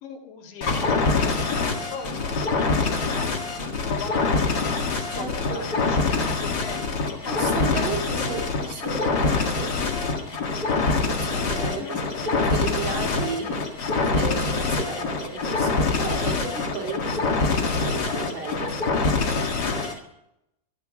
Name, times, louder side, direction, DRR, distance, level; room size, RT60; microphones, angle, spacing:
voice 1, 0.0-3.0 3.8-4.5 4.9-7.6 11.3-12.7, left 6 dB, 85° left, -3 dB, 4.5 m, -39 dB
sound 1, 0.6-20.0, left 4 dB, 65° left, 0.9 m, -25 dB
voice 2, 4.9-5.7 7.3-9.8 11.0-18.8, right 4 dB, 45° right, 2 dB, 3.5 m, -34 dB
14.0 x 13.0 x 6.0 m, 0.84 s
omnidirectional pair, 5.0 m